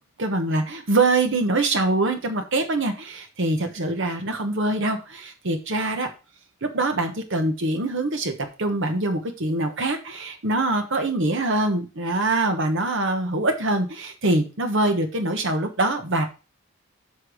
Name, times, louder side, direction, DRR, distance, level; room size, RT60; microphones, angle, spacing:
voice 1, 0.2-6.1 6.6-8.3 8.6-16.3, right 2 dB, 55° right, 7 dB, 1.1 m, -24 dB
8.0 x 3.5 x 6.3 m, 0.32 s
head